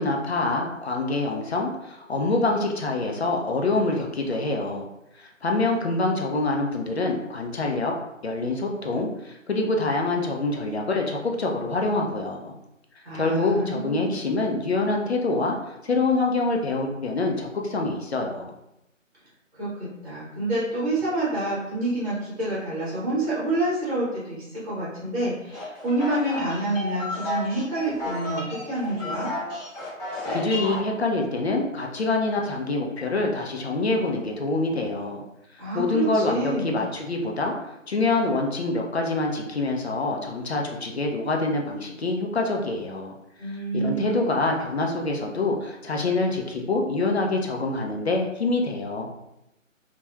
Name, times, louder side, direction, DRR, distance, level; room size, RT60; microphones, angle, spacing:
voice 1, 0.0-4.9 5.2-7.9 8.2-12.5 13.1-15.6 15.8-18.5 30.3-35.2 35.7-37.5 37.9-43.1 43.7-49.1, left 2 dB, 55° left, 1 dB, 0.5 m, -25 dB
voice 2, 13.0-14.2 19.5-29.3 35.6-36.8 43.4-44.0 44.5-44.8, right 2 dB, 25° right, -9 dB, 0.9 m, -28 dB
sound 1, 25.5-30.8, left 1 dB, 30° left, 1.1 m, -32 dB
2.8 x 2.3 x 2.3 m, 0.87 s
figure-of-eight pair, 160°, 39 cm